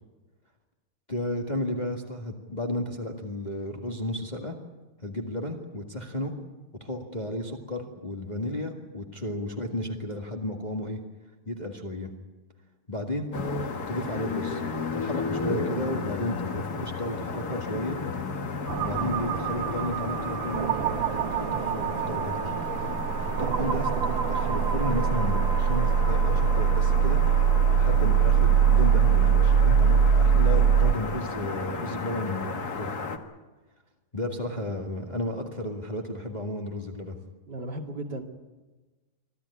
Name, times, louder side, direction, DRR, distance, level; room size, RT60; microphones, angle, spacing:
voice 1, 1.1-4.6 5.0-6.3 6.8-11.0 11.5-12.1 12.9-13.3 13.9-14.6 14.9-18.0 18.8-20.8 21.3-21.5 21.7-22.4 23.4-27.2 27.7-32.9 34.1-37.2, left 1 dB, 20° left, 1 dB, 1.9 m, -33 dB
sound 1, 13.3-33.2, left 4 dB, 50° left, 2.0 m, -34 dB
sound 2, 18.7-30.9, right 7 dB, 65° right, 1.5 m, -23 dB
voice 2, 37.5-38.2, right 1 dB, 50° right, 2 dB, 2.9 m, -35 dB
25.0 x 15.5 x 9.8 m, 1.2 s
omnidirectional pair, 2.4 m